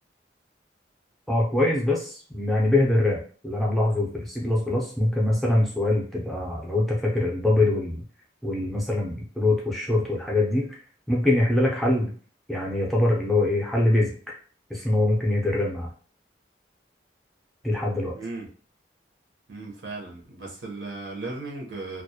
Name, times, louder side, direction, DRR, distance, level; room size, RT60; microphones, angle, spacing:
voice 1, 1.3-8.0 8.4-10.7 11.1-12.1 12.5-14.1 14.7-15.9 17.6-18.1, left 2 dB, ahead, -3 dB, 0.4 m, -23 dB
voice 2, 18.1-18.5 19.5-22.0, right 3 dB, 90° right, -1 dB, 0.8 m, -36 dB
2.2 x 2.0 x 2.7 m, 0.42 s
head